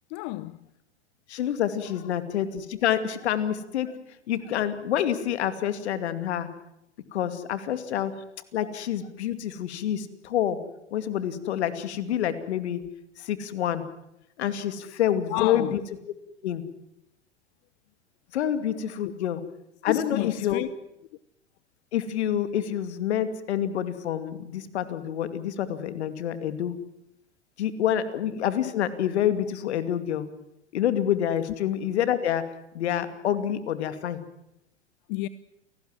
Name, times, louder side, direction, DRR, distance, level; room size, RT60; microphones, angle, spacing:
voice 1, 0.1-0.6 3.8-4.0 15.3-15.8 19.0-19.1 19.9-20.7 35.1-35.3, left 20 dB, 45° left, 0.9 m, -30 dB
voice 2, 1.3-3.9 4.3-6.5 7.1-8.1 8.5-10.6 10.9-12.8 13.2-13.9 14.4-15.8 16.4-16.6 18.3-19.4 19.8-20.6 21.9-26.7 27.6-30.3 30.7-32.4 32.7-34.2, left 10 dB, 65° left, 2.6 m, -27 dB
29.0 x 18.5 x 7.5 m
hypercardioid pair, 100°, 36 cm